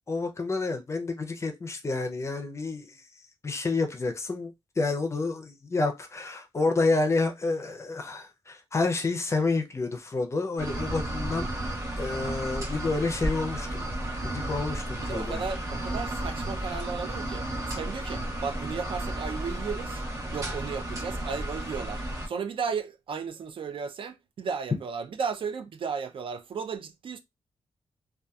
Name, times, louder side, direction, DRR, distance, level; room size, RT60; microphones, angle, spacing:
voice 1, 0.1-3.1 3.4-13.9 14.2-15.5, left 3 dB, 30° left, 0.5 m, -29 dB
sound 1, 10.6-22.3, right 1 dB, 35° right, 1.0 m, -33 dB
voice 2, 14.9-17.5 17.8-20.0 20.3-27.2, right 6 dB, 60° right, 0.4 m, -34 dB
2.6 x 2.2 x 2.3 m
wide cardioid pair, 160°, 10 cm